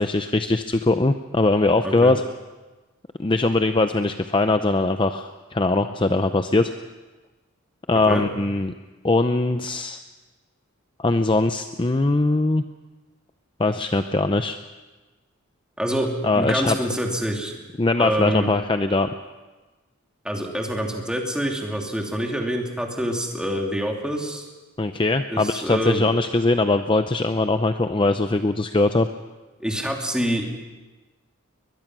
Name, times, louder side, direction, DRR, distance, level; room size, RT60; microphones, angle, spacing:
voice 1, 0.0-2.2 3.2-6.7 7.9-8.7 9.0-10.0 11.0-12.6 13.6-14.6 16.2-16.8 17.8-19.1 24.8-29.1, left 2 dB, 25° left, 8 dB, 0.6 m, -21 dB
voice 2, 7.9-8.2 15.8-17.6 18.0-18.5 20.2-24.4 25.3-26.0 29.6-30.5, equal, 5° right, 1 dB, 2.7 m, -26 dB
22.0 x 21.5 x 6.1 m, 1.2 s
head